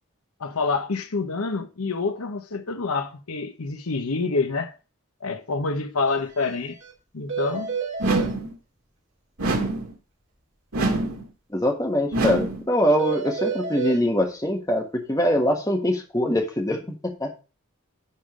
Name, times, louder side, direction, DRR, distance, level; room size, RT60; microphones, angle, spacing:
voice 1, 0.4-4.7 5.2-6.8 7.1-7.8, left 4 dB, 85° left, 0.9 m, -27 dB
sound 1, 6.1-6.2 6.4-6.5 6.8-6.9 7.3-8.3 13.0-14.0, right 6 dB, 55° right, 2.2 m, -29 dB
sound 2, 8.0-8.6 9.4-9.9 10.7-11.3 12.1-12.7, right 2 dB, 80° right, 2.1 m, -25 dB
voice 2, 11.5-17.4, equal, 15° left, 1.4 m, -23 dB
10.5 x 3.8 x 5.0 m
head